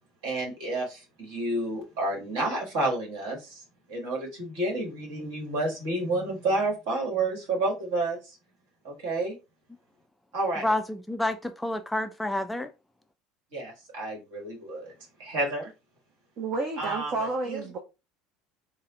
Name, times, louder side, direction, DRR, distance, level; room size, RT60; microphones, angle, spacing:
voice 1, 0.2-8.4 8.8-9.4 10.3-10.7 13.5-14.9 15.2-15.7 16.8-17.6, right 2 dB, 60° right, 1.5 m, -30 dB
voice 2, 10.6-12.7, left 1 dB, 5° left, 0.3 m, -29 dB
voice 3, 16.4-17.8, right 3 dB, 45° right, 0.6 m, -30 dB
3.9 x 2.1 x 3.7 m
figure-of-eight pair, 65°, 0 cm